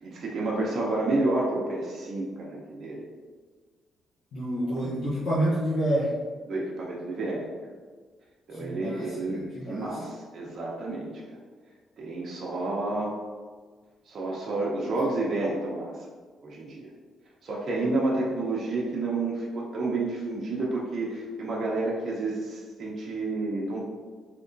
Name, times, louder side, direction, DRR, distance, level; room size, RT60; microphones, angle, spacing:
voice 1, 0.0-3.1 4.6-5.0 6.5-7.5 8.5-11.4 12.0-13.2 14.1-16.0 16.4-16.9 17.4-23.9, right 2 dB, 55° right, -4 dB, 0.6 m, -30 dB
voice 2, 4.3-6.1 8.5-10.0, right 1 dB, 75° left, -10 dB, 0.9 m, -28 dB
3.4 x 2.9 x 2.6 m, 1.5 s
cardioid pair, 90°, 0 cm